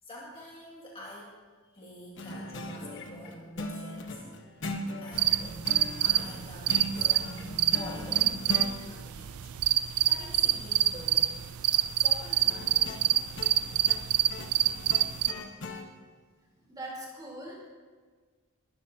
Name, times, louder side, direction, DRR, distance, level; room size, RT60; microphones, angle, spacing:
voice 1, 0.0-4.2 4.6-4.7 5.0-5.6 6.0-8.4 8.9-13.3, left 1 dB, 25° left, -5 dB, 2.2 m, -47 dB
sound 1, 2.2-8.7 12.5-15.8, left 1 dB, 55° left, 1.2 m, -39 dB
sound 2, 5.2-15.3, right 13 dB, 80° right, 0.4 m, -27 dB
voice 2, 15.1-15.5 16.6-17.7, right 1 dB, 15° right, -3 dB, 3.8 m, -43 dB
20.5 x 13.0 x 2.9 m, 1.5 s
head